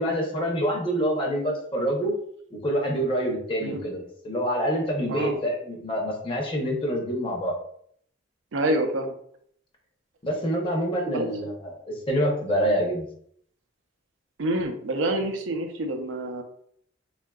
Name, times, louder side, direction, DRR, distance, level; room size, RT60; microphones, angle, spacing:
voice 1, 0.0-2.1 2.5-7.6 10.2-13.1, equal, 25° left, -1 dB, 0.7 m, -26 dB
voice 2, 8.5-9.1 11.1-11.3 14.4-16.4, right 1 dB, 80° right, 5 dB, 0.5 m, -27 dB
3.6 x 2.4 x 2.3 m, 0.64 s
head